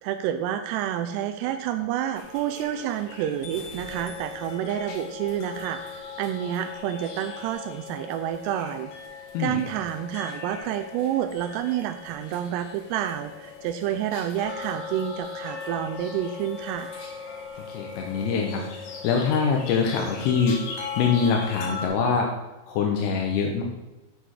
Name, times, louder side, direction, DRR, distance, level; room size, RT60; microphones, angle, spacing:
voice 1, 0.0-8.9 9.4-16.9, right 10 dB, 85° right, 6 dB, 2.5 m, -29 dB
sound 1, 2.1-21.9, left 5 dB, 65° left, 2.2 m, -39 dB
voice 2, 9.3-9.7 17.7-20.6 21.0-22.4 22.7-23.6, left 5 dB, 80° left, 1 dB, 2.9 m, -24 dB
8.3 x 5.7 x 4.8 m, 1.1 s
omnidirectional pair, 5.0 m